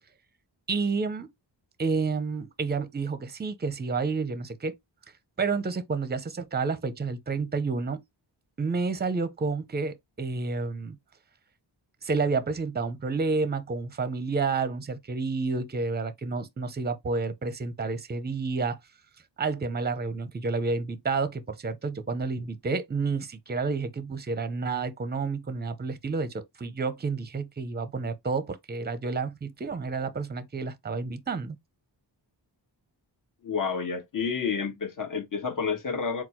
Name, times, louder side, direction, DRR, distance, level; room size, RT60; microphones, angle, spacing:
voice 1, 0.7-1.3 1.8-4.7 5.4-8.0 8.6-11.0 12.0-18.8 19.4-31.6, right 4 dB, 25° right, 0.6 m, -30 dB
voice 2, 33.4-36.2, left 5 dB, 45° left, 1.3 m, -30 dB
4.3 x 2.0 x 4.4 m
wide cardioid pair, 95°, 44 cm